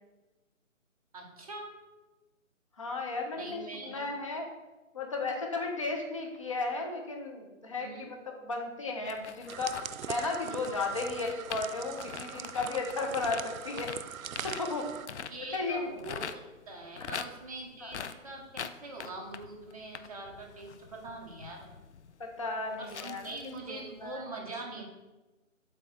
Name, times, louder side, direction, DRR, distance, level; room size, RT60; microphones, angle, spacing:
voice 1, 1.1-1.7 3.3-4.1 7.7-8.1 15.3-21.7 22.8-24.8, right 2 dB, 25° right, 0 dB, 1.0 m, -43 dB
voice 2, 2.8-4.4 4.9-9.8 10.1-13.9 14.4-14.9 15.5-15.8 17.0-17.1 17.8-17.9 22.2-23.4 23.7-24.2, left 3 dB, 25° left, 1 dB, 0.7 m, -34 dB
sound 1, 9.0-16.4 16.6-23.7 24.1-24.2, left 7 dB, 60° left, 0.5 m, -43 dB
sound 2, 9.5-15.1, right 8 dB, 80° right, 0.5 m, -42 dB
7.9 x 3.0 x 5.9 m, 1.1 s
figure-of-eight pair, 160°, 40 cm